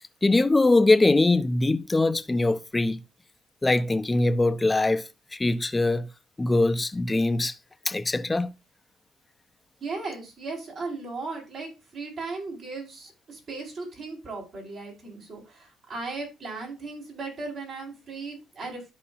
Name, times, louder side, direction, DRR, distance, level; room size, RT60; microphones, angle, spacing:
voice 1, 0.2-3.0 3.6-5.0 5.3-6.1 6.4-7.5 7.9-8.5, left 2 dB, 20° left, 0.7 m, -22 dB
voice 2, 9.8-18.9, right 3 dB, 60° right, 5.2 m, -37 dB
13.5 x 5.2 x 2.6 m
supercardioid pair, 65°, 0 cm